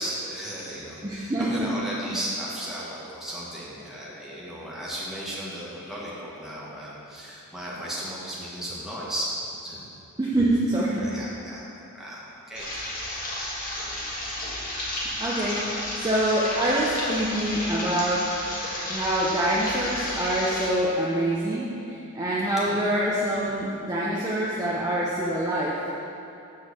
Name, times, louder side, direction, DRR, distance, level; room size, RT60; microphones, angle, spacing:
voice 1, 0.0-9.3 9.6-9.9 10.9-12.8 13.3-13.4 13.7-13.8 14.8-15.2 22.6-22.8, equal, ahead, -7 dB, 1.4 m, -35 dB
voice 2, 1.0-1.7 10.2-11.1 15.2-18.3 18.9-25.8, right 1 dB, 15° right, -6 dB, 0.6 m, -25 dB
sound 1, 12.5-20.7, left 1 dB, 40° left, 1.4 m, -32 dB
7.1 x 3.9 x 6.4 m, 2.7 s
head